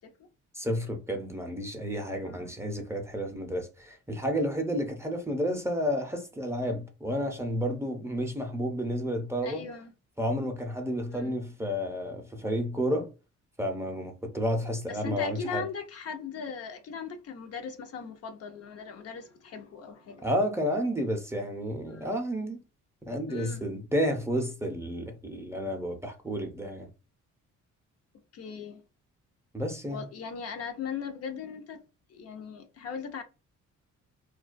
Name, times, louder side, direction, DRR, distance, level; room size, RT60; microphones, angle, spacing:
voice 1, 0.5-9.6 10.2-13.1 13.6-15.7 20.2-22.6 23.1-26.9 29.5-30.1, equal, 10° right, 0.5 m, -31 dB
voice 2, 9.4-9.9 11.1-11.3 14.9-20.2 21.9-22.1 23.3-23.6 28.3-28.8 29.9-31.8 32.1-33.2, left 6 dB, 55° left, 0.5 m, -39 dB
2.3 x 2.2 x 2.4 m
cardioid pair, 90°, 30 cm